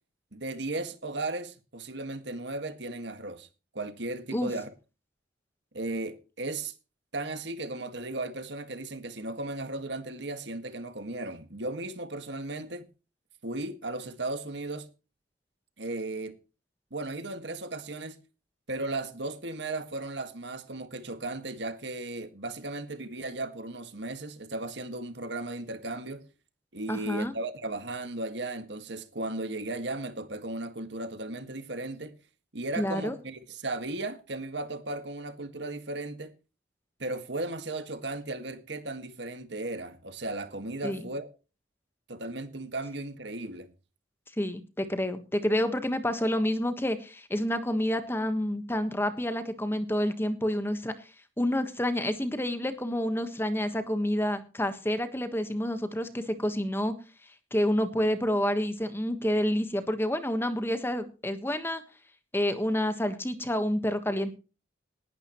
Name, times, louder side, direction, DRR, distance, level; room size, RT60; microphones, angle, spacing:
voice 1, 0.3-3.5 3.7-4.7 5.7-6.7 7.1-12.9 13.4-14.9 15.8-16.4 16.9-18.2 18.7-26.3 26.7-32.1 32.5-36.3 37.0-41.3 42.1-43.7, right 2 dB, 70° right, 1.8 m, -36 dB
voice 2, 26.9-27.3 32.8-33.1 40.8-41.0 44.4-50.9 51.4-57.0 57.5-61.8 62.3-64.3, left 1 dB, 10° left, 1.3 m, -28 dB
19.0 x 11.5 x 3.1 m
head